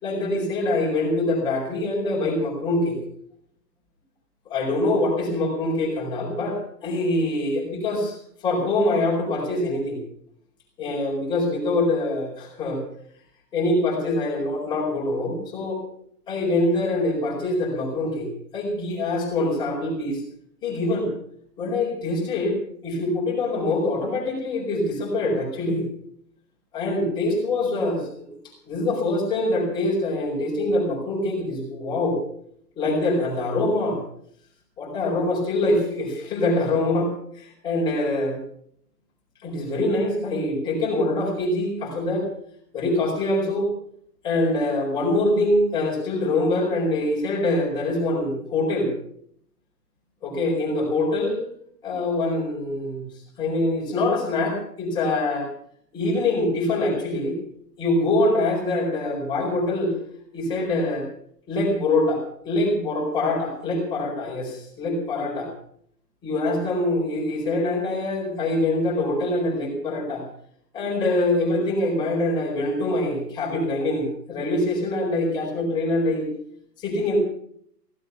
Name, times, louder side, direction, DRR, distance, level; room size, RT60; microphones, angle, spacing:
voice 1, 0.0-3.0 4.5-8.2 8.4-10.0 10.8-12.8 13.5-15.8 16.3-20.2 20.6-21.1 21.6-22.6 22.8-25.8 26.7-28.3 28.7-32.2 32.8-34.0 34.8-37.1 37.3-38.4 39.4-42.3 42.7-43.7 44.2-48.9 50.2-51.4 51.8-53.0 53.4-55.5 55.9-57.3 57.8-59.9 60.3-61.0 61.5-65.5 66.2-70.2 70.7-76.3 76.8-77.2, left 2 dB, 10° left, -3 dB, 4.5 m, -24 dB
16.5 x 13.5 x 5.7 m, 0.65 s
hypercardioid pair, 170°, 48 cm